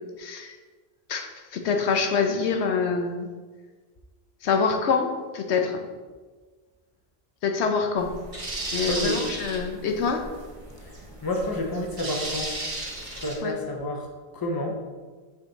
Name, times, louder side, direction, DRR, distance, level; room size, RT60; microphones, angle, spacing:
voice 1, 0.2-0.5 1.1-3.3 4.4-5.8 7.4-8.1 8.7-10.3 13.4-13.5, left 5 dB, 85° left, 4 dB, 1.0 m, -25 dB
sound 1, 8.0-13.4, right 1 dB, 35° right, 0.9 m, -35 dB
voice 2, 8.9-9.2 11.2-12.5 13.0-14.1 14.3-14.8, left 1 dB, 25° left, 1 dB, 0.7 m, -29 dB
5.8 x 4.5 x 3.9 m, 1.4 s
omnidirectional pair, 1.1 m